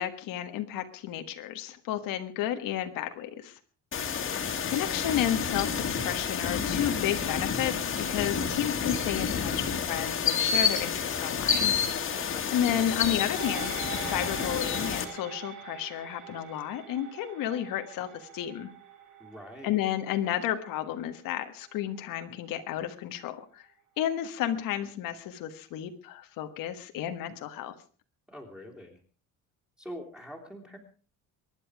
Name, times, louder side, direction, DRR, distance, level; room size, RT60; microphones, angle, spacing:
voice 1, 0.0-3.6 4.3-11.7 12.5-18.7 19.6-23.6 24.0-27.7, left 11 dB, 80° left, 7 dB, 1.7 m, -32 dB
sound 1, 3.9-15.0, left 6 dB, 40° left, 2.2 m, -29 dB
voice 2, 12.1-12.5 19.2-19.8 28.3-29.0 29.8-30.8, equal, 5° right, 2 dB, 3.1 m, -44 dB
sound 2, 13.4-22.0 22.4-22.5, right 9 dB, 60° right, 7.2 m, -44 dB
23.5 x 10.5 x 4.8 m, 0.39 s
cardioid pair, 175°, 33 cm